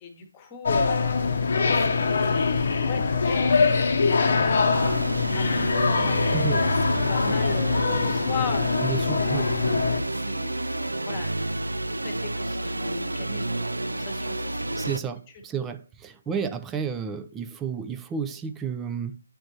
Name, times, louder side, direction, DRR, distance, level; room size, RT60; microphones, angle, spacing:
voice 1, 0.0-3.8 4.3-5.0 5.3-6.7 7.0-9.1 9.9-14.8 16.2-16.4, left 5 dB, 20° left, 1.1 m, -38 dB
sound 1, 0.7-10.0, left 4 dB, 50° left, 0.8 m, -23 dB
sound 2, 4.7-15.0, right 2 dB, 80° right, 0.4 m, -29 dB
voice 2, 8.8-9.5 14.8-19.2, right 7 dB, 10° right, 0.4 m, -31 dB
8.5 x 4.4 x 2.7 m
figure-of-eight pair, 150°, 0 cm